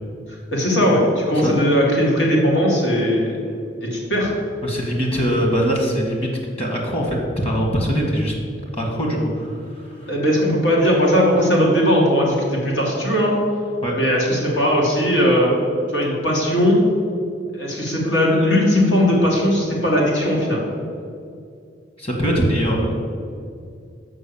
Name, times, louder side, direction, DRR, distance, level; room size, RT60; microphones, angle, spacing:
voice 1, 0.5-3.4 3.8-4.3 10.1-13.3 13.9-15.5 15.9-16.8 17.5-20.6, equal, 80° left, -3 dB, 2.2 m, -18 dB
voice 2, 4.6-6.3 6.6-7.2 7.4-8.3 8.7-10.1 13.8-13.9 22.0-22.9, equal, 35° left, 0 dB, 1.6 m, -22 dB
6.2 x 5.6 x 7.0 m, 2.4 s
head